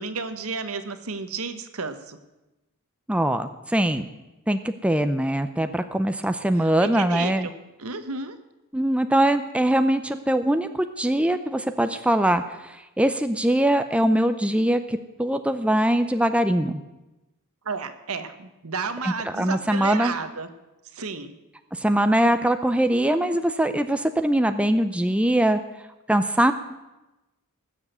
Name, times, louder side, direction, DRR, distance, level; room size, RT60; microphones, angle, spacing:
voice 1, 0.0-2.2 6.6-7.5 7.8-8.4 17.6-20.5 20.9-21.3, right 4 dB, 70° right, 10 dB, 1.3 m, -32 dB
voice 2, 3.1-4.1 4.5-7.5 8.7-12.4 13.0-16.8 19.0-20.1 21.8-25.6 26.1-26.5, right 1 dB, 5° right, 8 dB, 0.6 m, -22 dB
19.0 x 7.4 x 8.1 m, 1.0 s
head